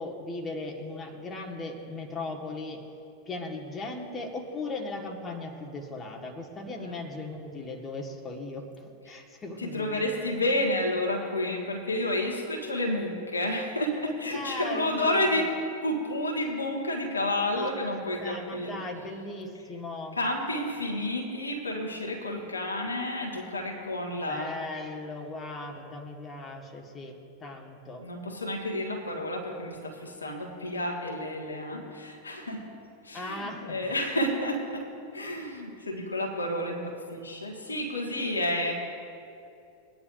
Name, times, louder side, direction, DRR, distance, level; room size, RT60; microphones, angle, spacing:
voice 1, 0.0-2.8 3.2-10.0 14.0-15.4 17.5-17.9 18.2-20.2 24.3-28.0 33.1-33.8, left 2 dB, 20° left, 1 dB, 1.5 m, -38 dB
voice 2, 9.6-15.5 15.8-18.7 20.1-24.5 28.0-32.8 33.0-38.7, left 1 dB, 80° left, 1 dB, 1.7 m, -30 dB
21.0 x 9.9 x 2.6 m, 2.5 s
figure-of-eight pair, 90°, 0 cm